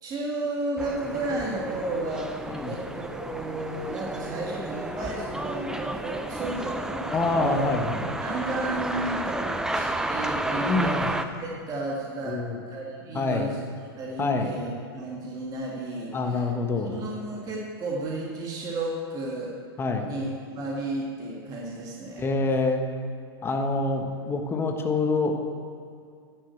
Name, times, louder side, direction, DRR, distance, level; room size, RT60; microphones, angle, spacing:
voice 1, 0.0-7.7 8.2-12.4 12.7-13.7 14.0-16.5 16.8-19.5 20.0-22.3, right 2 dB, 30° right, -3 dB, 2.0 m, -33 dB
sound 1, 0.8-11.2, right 1 dB, 5° right, 0.6 m, -32 dB
voice 2, 7.1-8.1 10.7-11.1 12.3-12.6 13.1-13.5 14.2-14.5 16.1-17.0 19.8-20.1 22.2-22.8 23.4-25.4, left 3 dB, 15° left, 3 dB, 1.3 m, -26 dB
11.0 x 6.3 x 7.9 m, 2.3 s
hypercardioid pair, 110°, 13 cm